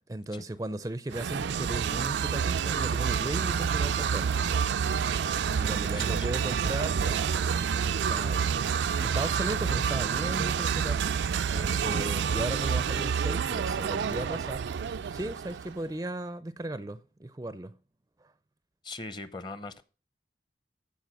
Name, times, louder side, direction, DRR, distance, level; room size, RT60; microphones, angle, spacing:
voice 1, 0.1-4.4 5.2-7.4 7.8-8.5 9.0-14.6 15.1-17.7 18.2-18.3, right 1 dB, 20° right, 0.4 m, -36 dB
sound 1, 1.1-15.8, right 7 dB, 80° right, 0.4 m, -28 dB
voice 2, 5.9-6.3 18.8-19.8, left 2 dB, 25° left, 0.7 m, -40 dB
14.5 x 4.8 x 6.1 m
head